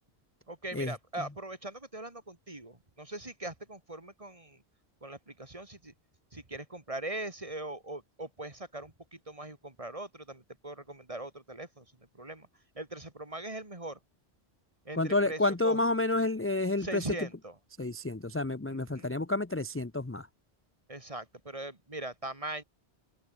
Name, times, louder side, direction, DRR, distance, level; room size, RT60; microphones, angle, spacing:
voice 1, 0.5-4.6 5.0-5.9 6.3-11.9 12.1-12.5 12.7-14.0 14.8-15.8 16.8-17.5 18.7-19.1 20.9-22.6, right 2 dB, 30° right, 2.8 m, -41 dB
voice 2, 15.0-17.1 17.8-20.3, left 2 dB, 15° left, 0.7 m, -29 dB
open air
omnidirectional pair, 1.1 m